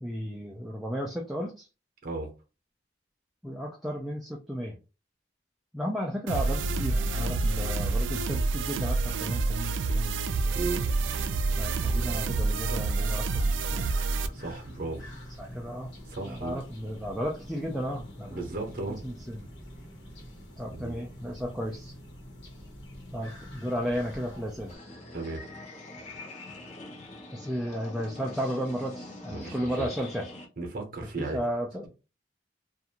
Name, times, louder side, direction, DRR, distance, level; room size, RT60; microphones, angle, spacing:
voice 1, 0.0-1.7 3.4-4.7 5.7-10.6 11.6-13.9 15.4-15.9 16.2-18.4 19.0-19.5 20.6-21.9 23.1-24.7 27.3-30.3 31.0-31.9, equal, ahead, -1 dB, 0.3 m, -34 dB
sound 1, 6.3-14.3, right 3 dB, 80° right, 0.3 m, -28 dB
sound 2, 10.6-24.8, equal, 75° left, 1.1 m, -46 dB
voice 2, 14.3-15.1 16.1-16.6 18.3-19.0 20.7-21.0 25.1-25.4 29.3-29.9 30.6-31.4, right 3 dB, 50° right, 4 dB, 0.8 m, -35 dB
sound 3, 24.7-30.5, left 2 dB, 35° left, 0.7 m, -44 dB
2.5 x 2.3 x 2.8 m, 0.31 s
head